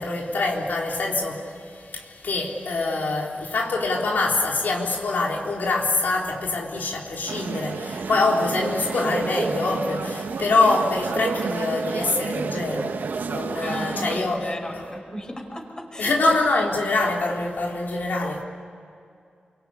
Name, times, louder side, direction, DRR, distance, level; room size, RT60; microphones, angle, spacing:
voice 1, 0.0-13.0 13.2-14.9 16.0-18.4, left 2 dB, 90° left, 3.7 m, -25 dB
sound 1, 7.3-14.2, right 5 dB, 90° right, 1.1 m, -31 dB
voice 2, 13.2-16.1, equal, 25° left, 5.2 m, -35 dB
29.0 x 24.0 x 8.6 m
wide cardioid pair, 120°, 3 cm